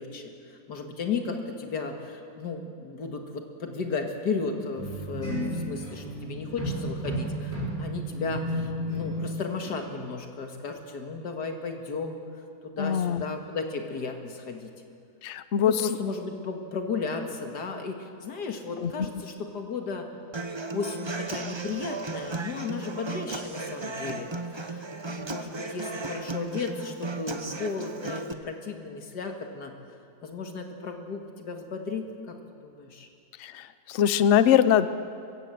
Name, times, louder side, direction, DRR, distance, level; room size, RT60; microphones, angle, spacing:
voice 1, 0.0-7.5 7.8-12.2 12.6-14.7 15.7-20.1 20.7-29.7 30.2-32.3 32.6-33.1, left 4 dB, 85° left, 4 dB, 2.3 m, -34 dB
sound 1, 4.8-9.3 9.6-9.9, equal, 10° left, 5.4 m, -32 dB
voice 2, 12.8-13.2 15.2-15.7 18.8-18.9 33.4-34.9, left 9 dB, 55° left, 13 dB, 0.9 m, -22 dB
Human voice / Acoustic guitar, 20.3-28.3, right 3 dB, 25° right, 0.6 m, -35 dB
22.0 x 16.0 x 7.6 m, 2.4 s
omnidirectional pair, 1.7 m